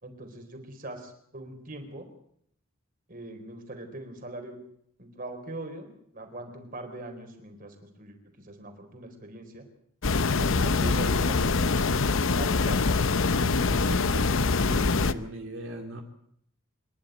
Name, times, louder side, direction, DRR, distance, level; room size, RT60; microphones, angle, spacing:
voice 1, 0.0-2.1 3.1-4.6 5.0-9.6 10.3-12.0 12.3-12.8, right 2 dB, 40° right, 6 dB, 4.0 m, -41 dB
sound 1, 10.0-15.1, left 4 dB, 60° left, 0.8 m, -24 dB
voice 2, 13.2-16.0, equal, 60° right, 2 dB, 2.6 m, -39 dB
26.0 x 11.5 x 9.2 m, 0.70 s
head